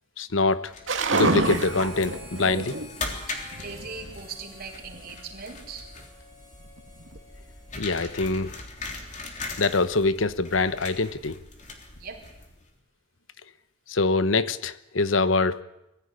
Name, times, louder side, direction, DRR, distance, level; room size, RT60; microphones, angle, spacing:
voice 1, 0.2-0.7 1.1-2.7 7.8-8.5 9.6-11.4 13.9-15.6, left 3 dB, 85° left, 14 dB, 1.0 m, -24 dB
sound 1, 0.7-12.7, left 3 dB, 40° left, 3.6 m, -40 dB
sound 2, 0.9-3.1 3.4-4.2 4.9-5.1 6.8-7.2, right 3 dB, 80° right, 2.2 m, -27 dB
Harmonica, 1.2-8.9, left 2 dB, 25° left, 7.5 m, -49 dB
voice 2, 3.3-5.9 8.8-9.0 11.9-12.2, right 5 dB, 50° right, 2 dB, 4.4 m, -40 dB
23.0 x 15.5 x 9.8 m, 0.90 s
head